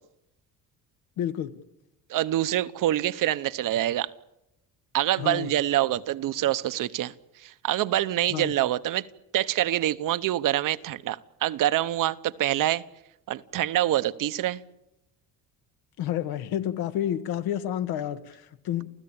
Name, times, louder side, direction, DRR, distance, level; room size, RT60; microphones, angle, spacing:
voice 1, 1.2-1.5 5.2-5.5 8.3-8.5 16.0-18.9, left 11 dB, 85° left, 1.7 m, -30 dB
voice 2, 2.1-4.1 4.9-7.1 7.4-9.1 9.3-12.8 13.3-14.6, right 13 dB, 60° right, 1.0 m, -26 dB
29.0 x 15.0 x 8.8 m
cardioid pair, 120°, 36 cm